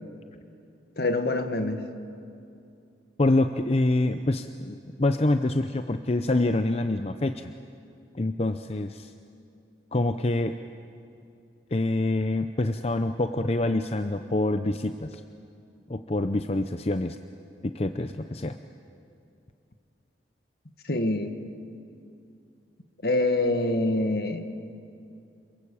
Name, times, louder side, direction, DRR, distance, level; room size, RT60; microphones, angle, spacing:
voice 1, 1.0-1.8 20.9-21.4 23.0-24.4, left 2 dB, 60° left, 8 dB, 1.8 m, -25 dB
voice 2, 3.2-7.5 8.1-9.1 9.9-10.5 11.7-15.2 15.9-17.2 17.6-18.6, left 2 dB, 35° left, 8 dB, 0.7 m, -26 dB
27.0 x 22.0 x 8.5 m, 2.5 s
head